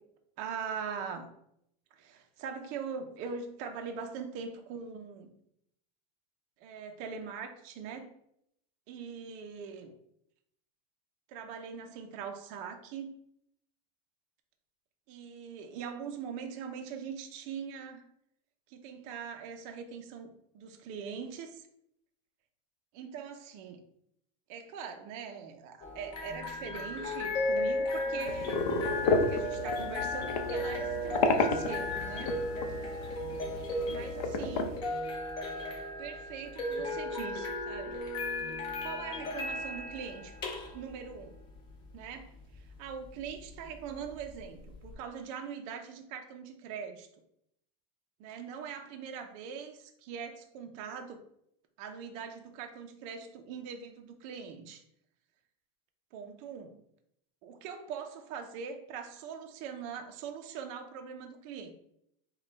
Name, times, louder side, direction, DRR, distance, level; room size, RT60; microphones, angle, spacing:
voice 1, 0.4-1.3 1.9-5.3 6.6-8.2 8.9-9.9 11.3-13.1 15.1-18.1 18.7-20.3 20.5-21.7 22.9-23.8 24.5-28.7 29.0-32.4 33.9-34.8 36.0-38.1 38.8-40.4 40.7-41.4 41.9-47.1 48.2-51.2 51.8-54.8 56.1-56.8 57.4-61.7, right 6 dB, 35° right, 4 dB, 0.4 m, -42 dB
sound 1, 25.8-44.9, left 1 dB, 20° left, 0.5 m, -36 dB
sound 2, 28.3-34.8, left 3 dB, 70° left, 0.7 m, -32 dB
5.2 x 2.2 x 3.9 m, 0.74 s
supercardioid pair, 180°, 20 cm